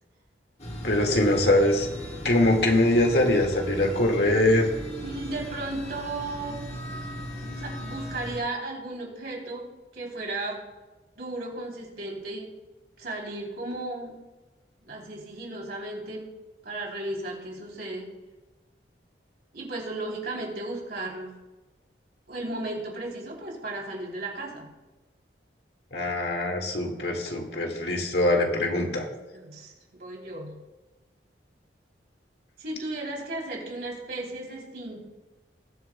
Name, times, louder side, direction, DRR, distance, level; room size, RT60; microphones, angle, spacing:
sound 1, 0.6-8.4, equal, 35° left, 1.7 m, -37 dB
voice 1, 0.8-1.9 2.2-4.7 25.9-29.1, left 1 dB, 65° left, 2 dB, 1.9 m, -23 dB
voice 2, 5.0-6.7 7.4-10.6 11.2-12.5 13.0-14.2 14.8-16.3 16.6-18.1 19.5-21.4 22.3-24.7 28.9-30.6 32.6-35.0, right 2 dB, 60° right, -2 dB, 3.3 m, -35 dB
20.5 x 7.8 x 2.3 m, 1.1 s
head